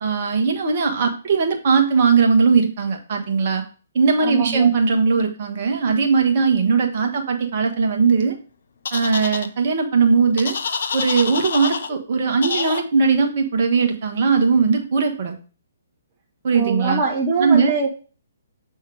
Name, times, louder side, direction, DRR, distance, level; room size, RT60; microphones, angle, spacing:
voice 1, 0.0-3.6 3.9-8.3 8.9-10.5 10.9-15.4 16.4-17.0 17.4-17.7, right 5 dB, 45° right, 1.5 m, -19 dB
voice 2, 4.2-4.7 16.5-17.9, right 4 dB, 25° right, 1.0 m, -23 dB
sound 1, 8.9-9.5 10.4-11.9 12.4-12.8, left 5 dB, 60° left, 0.6 m, -26 dB
7.6 x 3.6 x 4.8 m
figure-of-eight pair, 130°, 0 cm